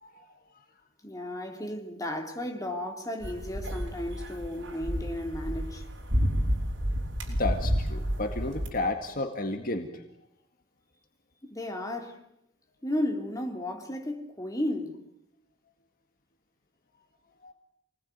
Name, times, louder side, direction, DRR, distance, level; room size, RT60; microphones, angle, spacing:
voice 1, 1.0-5.9 11.4-12.2 12.8-15.0, left 1 dB, 20° left, 3.6 m, -34 dB
sound 1, 3.2-8.7, equal, 85° right, 5.5 m, -30 dB
voice 2, 7.3-9.9 17.4-17.5, left 2 dB, 50° left, 2.1 m, -32 dB
28.0 x 20.0 x 9.6 m
head